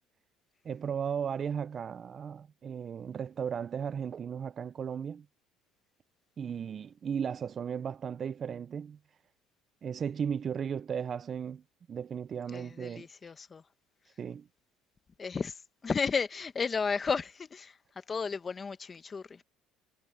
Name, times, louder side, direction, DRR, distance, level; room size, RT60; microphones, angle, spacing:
voice 1, 0.6-5.3 6.4-9.0 9.8-11.6 11.9-13.3 14.2-14.5, right 7 dB, 35° right, 0.4 m, -36 dB
voice 2, 12.5-13.6 15.2-19.4, left 5 dB, 25° left, 1.1 m, -33 dB
cardioid pair, 130°, 0 cm